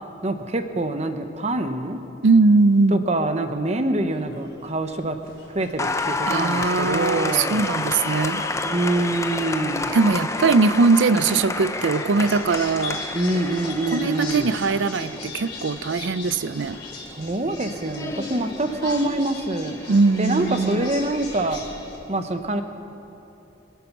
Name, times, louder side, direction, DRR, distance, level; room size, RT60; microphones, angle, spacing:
voice 1, 0.2-2.0 2.9-5.2 5.5-7.6 8.6-9.9 13.1-14.5 17.1-19.8 20.2-21.6 22.1-22.6, right 2 dB, 35° right, 8 dB, 0.9 m, -25 dB
voice 2, 2.2-3.0 6.3-8.4 9.9-13.0 13.9-16.8 19.9-20.9, right 4 dB, 75° right, 15 dB, 0.5 m, -20 dB
sound 1, 4.1-22.0, left 3 dB, 60° left, 4.8 m, -41 dB
Applause, 5.8-21.1, left 2 dB, 15° left, 0.6 m, -30 dB
25.5 x 9.3 x 6.0 m, 3.0 s
head